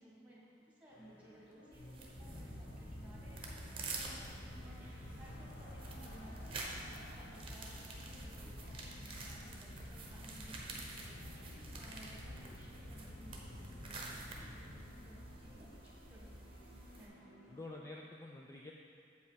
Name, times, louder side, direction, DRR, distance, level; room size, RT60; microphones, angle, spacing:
voice 1, 0.0-17.6, right 1 dB, 10° right, -6 dB, 1.8 m, -59 dB
sound 1, 0.9-17.7, left 1 dB, 80° left, 1.1 m, -60 dB
sound 2, 1.7-17.1, right 3 dB, 30° right, 1.0 m, -50 dB
sound 3, 2.1-15.6, left 1 dB, 40° left, 0.9 m, -50 dB
voice 2, 17.5-18.7, left 2 dB, 15° left, -1 dB, 0.4 m, -49 dB
7.8 x 5.5 x 5.1 m, 2.4 s
head